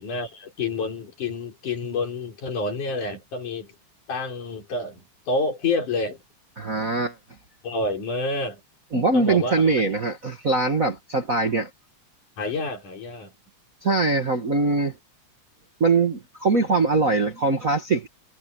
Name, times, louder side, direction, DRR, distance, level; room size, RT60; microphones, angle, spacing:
voice 1, 0.0-3.7 4.1-6.2 7.6-8.6 9.1-9.8 12.4-13.3, left 3 dB, 75° left, 6.1 m, -28 dB
voice 2, 6.6-7.2 8.9-11.7 13.8-14.9 15.8-18.1, right 3 dB, 40° right, 1.3 m, -22 dB
omnidirectional pair, 3.6 m